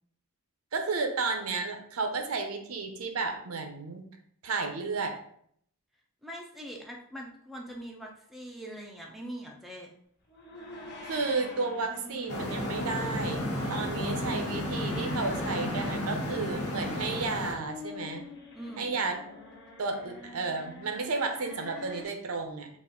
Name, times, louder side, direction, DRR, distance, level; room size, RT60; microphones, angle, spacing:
voice 1, 0.7-4.0 4.4-5.2 11.0-18.3 18.8-19.2 19.8-22.8, right 4 dB, 75° right, 5 dB, 0.6 m, -32 dB
voice 2, 6.2-9.9 18.5-18.9, equal, ahead, -1 dB, 0.5 m, -42 dB
sound 1, 10.3-22.0, left 3 dB, 45° left, 1.3 m, -46 dB
sound 2, 12.3-17.5, left 1 dB, 80° left, 0.9 m, -32 dB
4.1 x 2.5 x 3.7 m, 0.65 s
head